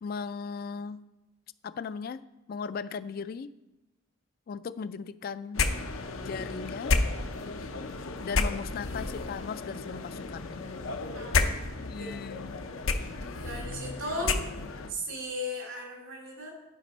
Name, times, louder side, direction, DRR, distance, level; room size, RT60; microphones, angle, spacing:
voice 1, 0.0-1.0 1.6-2.2 2.5-3.5 4.5-5.7 6.3-7.0 8.2-10.6 11.9-12.6, left 5 dB, 45° left, 14 dB, 0.3 m, -37 dB
sound 1, 5.5-14.9, left 3 dB, 80° left, 0.7 m, -31 dB
voice 2, 12.0-12.4 13.4-14.4 14.9-16.5, equal, 85° right, -1 dB, 2.9 m, -36 dB
10.5 x 5.2 x 5.2 m, 1.0 s
head